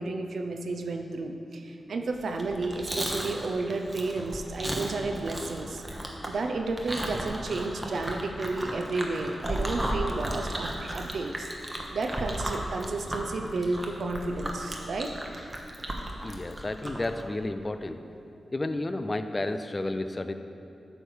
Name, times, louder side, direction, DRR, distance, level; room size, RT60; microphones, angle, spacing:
voice 1, 0.0-5.8 6.3-11.5 11.9-15.1, right 3 dB, 75° right, 5 dB, 0.5 m, -32 dB
Chewing mastication, 2.3-17.1, right 1 dB, 20° right, 1.1 m, -34 dB
voice 2, 16.2-18.0 18.5-20.3, left 2 dB, 30° left, 9 dB, 0.4 m, -31 dB
8.6 x 3.3 x 6.3 m, 2.8 s
cardioid pair, 50°, 0 cm